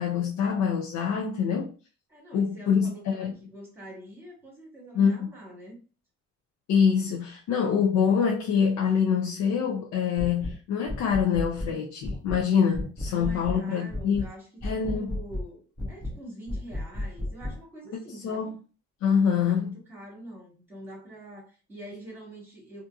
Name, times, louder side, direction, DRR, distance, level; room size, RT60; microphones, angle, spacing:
voice 1, 0.0-1.7 2.3-3.3 4.9-5.3 6.7-14.3 14.6-15.2 18.2-18.6 19.0-19.7, left 7 dB, 65° left, 0.5 m, -25 dB
voice 2, 2.1-5.8 13.1-14.5 14.8-18.5 19.5-22.8, right 1 dB, 5° right, 1.3 m, -45 dB
sound 1, 10.2-10.6 10.9-11.7 12.0-12.4 12.7-13.6 13.9-14.3 14.6-15.5 15.8-16.2 16.5-17.6, left 1 dB, 10° left, 0.5 m, -33 dB
2.7 x 2.5 x 2.3 m
cardioid pair, 130°, 31 cm